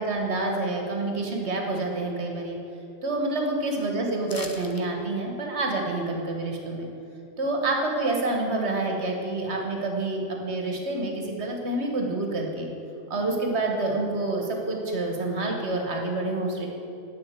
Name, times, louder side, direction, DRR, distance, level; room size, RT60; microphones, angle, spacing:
voice 1, 0.0-2.6 3.0-6.9 7.4-12.7 13.1-16.7, right 2 dB, 65° right, 1 dB, 1.8 m, -28 dB
sound 1, 4.3-4.9 5.2-5.3, left 3 dB, 25° left, 0.5 m, -39 dB
10.5 x 5.7 x 8.2 m, 2.8 s
omnidirectional pair, 1.2 m